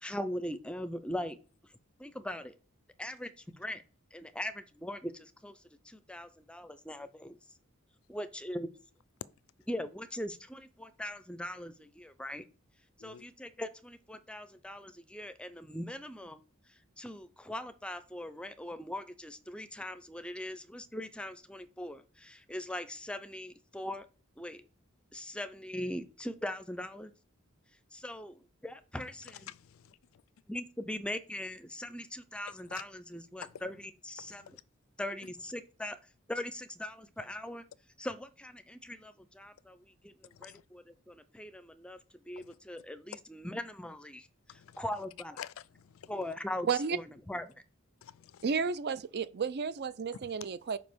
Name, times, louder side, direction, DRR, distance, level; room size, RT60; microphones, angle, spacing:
voice 1, 0.0-1.4 2.0-2.5 3.0-3.8 4.1-5.6 5.8-7.4 8.1-8.7 9.7-12.4 13.0-16.4 17.0-24.1 24.4-24.6 25.1-27.1 27.9-29.5 30.5-34.4 35.0-36.0 36.3-37.6 38.0-44.3 44.5-45.4 46.1-47.0 47.3-47.6, left 1 dB, 5° left, 0.5 m, -40 dB
voice 2, 29.5-30.2 32.5-32.8 33.4-33.6 34.2-34.6 35.2-35.3 40.3-40.6 42.4-42.6 44.5-44.8 45.4-46.1 48.0-48.4, left 9 dB, 70° left, 0.4 m, -49 dB
voice 3, 46.6-47.0 48.4-50.8, right 5 dB, 50° right, 0.5 m, -32 dB
5.3 x 5.0 x 6.1 m
head